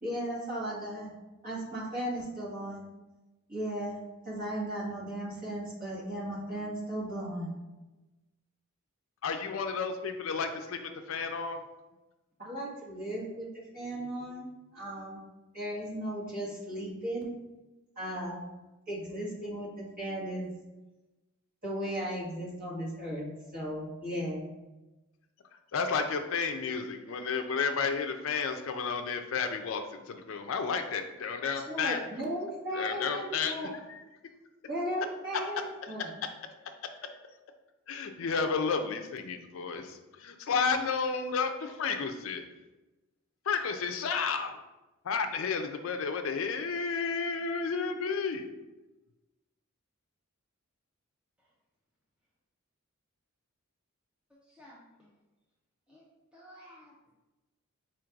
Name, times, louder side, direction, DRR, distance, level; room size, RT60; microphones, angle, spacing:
voice 1, 0.0-1.1 1.4-2.8 3.5-4.0 4.2-7.5 12.4-15.2 15.5-17.3 17.9-18.5 18.9-20.5 21.6-23.2 23.5-24.4 31.6-33.7 34.7-36.1, right 1 dB, 40° right, -7 dB, 1.5 m, -36 dB
voice 2, 9.2-11.6 25.7-32.0 32.7-33.5 33.9-34.0 36.8-37.0 37.9-42.4 43.5-44.6 45.0-48.5, left 5 dB, 65° left, 6 dB, 0.4 m, -32 dB
voice 3, 54.5-55.1 55.9-56.0 56.3-57.1, equal, 5° right, -6 dB, 0.5 m, -54 dB
4.4 x 2.5 x 4.5 m, 1.1 s
head